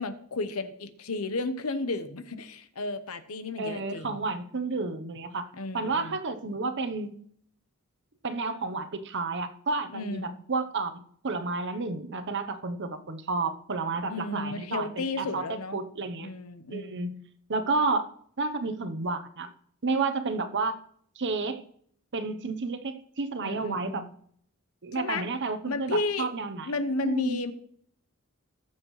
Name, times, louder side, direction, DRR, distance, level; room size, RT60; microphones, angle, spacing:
voice 1, 0.0-4.2 5.5-6.2 9.9-10.4 14.1-15.8 16.2-17.1 23.4-24.1 24.9-25.3 25.7-26.3 26.7-27.5, left 2 dB, 75° left, 11 dB, 1.0 m, -33 dB
voice 2, 3.6-5.5 5.7-7.2 8.2-16.3 16.7-17.2 17.5-18.1 18.4-19.5 19.8-20.8 21.2-21.6 22.1-24.1 24.8-26.7 27.0-27.4, right 3 dB, 55° right, 9 dB, 0.9 m, -31 dB
20.0 x 7.3 x 3.2 m, 0.64 s
head